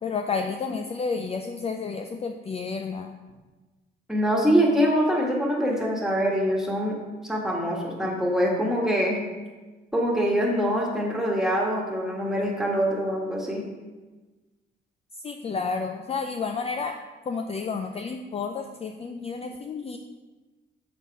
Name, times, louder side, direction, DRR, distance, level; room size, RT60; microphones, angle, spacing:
voice 1, 0.0-3.2 15.2-17.0 17.3-20.0, left 5 dB, 30° left, 5 dB, 0.4 m, -31 dB
voice 2, 4.1-9.2 9.9-13.6, equal, ahead, -2 dB, 1.6 m, -24 dB
7.2 x 4.1 x 4.7 m, 1.3 s
cardioid pair, 90°, 20 cm